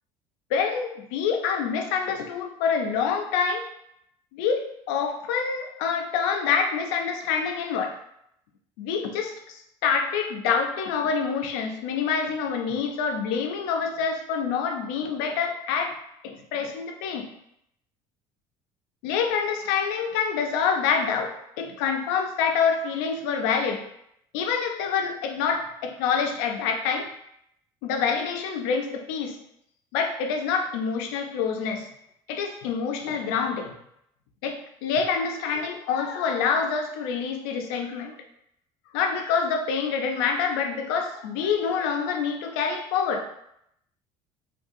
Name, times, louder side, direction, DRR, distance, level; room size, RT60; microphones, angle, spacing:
voice 1, 0.5-3.7 4.3-8.0 8.8-16.0 16.2-17.3 19.0-23.8 24.3-27.1 27.8-29.4 29.9-31.9 32.3-33.7 34.4-38.2 38.9-43.3, left 6 dB, 85° left, 4 dB, 0.5 m, -26 dB
3.6 x 2.3 x 2.6 m, 0.76 s
supercardioid pair, 110°, 11 cm